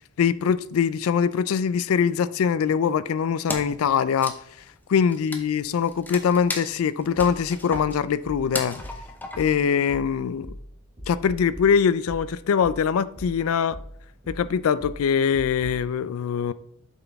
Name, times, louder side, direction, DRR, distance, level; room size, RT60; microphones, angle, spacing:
voice 1, 0.2-4.3 4.9-8.8 9.4-10.5 11.1-13.8 14.3-16.5, left 7 dB, 70° left, 16 dB, 0.3 m, -23 dB
Wood, 3.5-3.8 4.1-9.7, left 2 dB, 10° left, 0.7 m, -35 dB
sound 1, 7.2-15.9, equal, 30° right, 3.2 m, -42 dB
7.4 x 5.8 x 3.5 m, 0.69 s
head